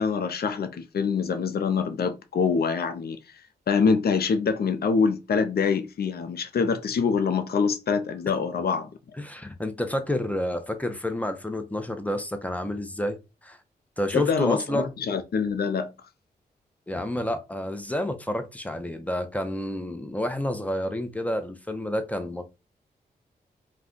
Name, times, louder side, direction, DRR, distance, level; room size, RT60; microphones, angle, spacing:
voice 1, 0.0-3.2 3.7-8.9 14.1-15.9, left 5 dB, 60° left, 0.6 m, -25 dB
voice 2, 9.2-13.2 13.4-13.6 14.0-14.9 16.9-22.4, left 1 dB, 10° left, 0.7 m, -29 dB
2.4 x 2.2 x 3.6 m
cardioid pair, 50°, 18 cm